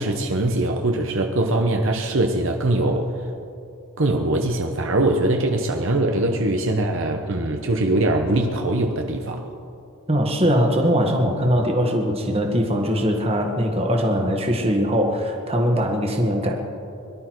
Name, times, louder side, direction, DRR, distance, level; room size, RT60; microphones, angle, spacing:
voice 1, 0.0-3.1 4.0-9.4, right 2 dB, 60° right, 3 dB, 1.0 m, -22 dB
voice 2, 10.1-16.6, equal, 25° right, 2 dB, 1.6 m, -21 dB
22.5 x 12.0 x 4.7 m, 2.5 s
head